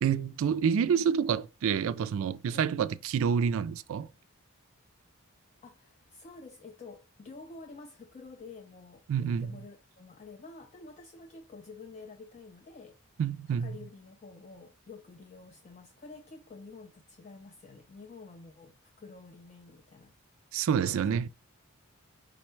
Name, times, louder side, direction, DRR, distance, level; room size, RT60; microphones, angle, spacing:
voice 1, 0.0-4.1 9.1-9.5 13.2-13.7 20.5-21.3, right 7 dB, 60° right, 0.3 m, -28 dB
voice 2, 5.6-13.0 13.5-20.1 20.9-21.3, left 3 dB, 30° left, 0.4 m, -49 dB
5.0 x 2.2 x 4.3 m
head